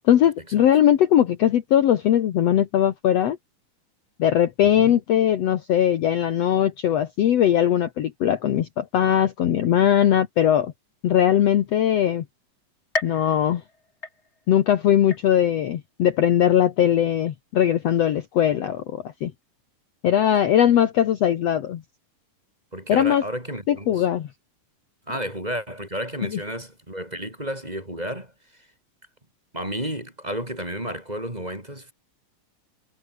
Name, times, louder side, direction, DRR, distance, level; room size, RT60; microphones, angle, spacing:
voice 1, 0.1-3.4 4.2-10.7 11.0-12.3 13.0-13.6 14.5-19.3 20.0-21.8 22.9-23.2 23.7-24.3, left 10 dB, 60° left, 2.1 m, -20 dB
voice 2, 4.6-4.9 22.7-24.0 25.1-28.3 29.5-31.9, equal, 10° right, 4.2 m, -32 dB
sound 1, 12.9-14.6 15.1-15.7 16.2-16.3 17.3-17.4, left 2 dB, 20° left, 4.2 m, -34 dB
omnidirectional pair, 3.8 m